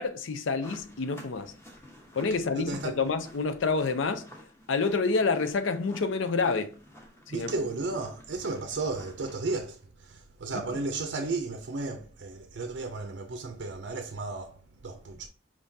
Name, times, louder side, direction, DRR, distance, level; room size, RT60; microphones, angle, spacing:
voice 1, 0.0-1.5 2.1-4.3 4.7-6.7 7.3-7.5 10.5-10.8, left 4 dB, 85° left, 0.5 m, -28 dB
sound 1, 0.6-9.6, equal, 15° left, 0.8 m, -51 dB
voice 2, 2.5-3.0 7.3-15.3, right 3 dB, 65° right, 0.5 m, -34 dB
5.0 x 3.6 x 2.7 m
head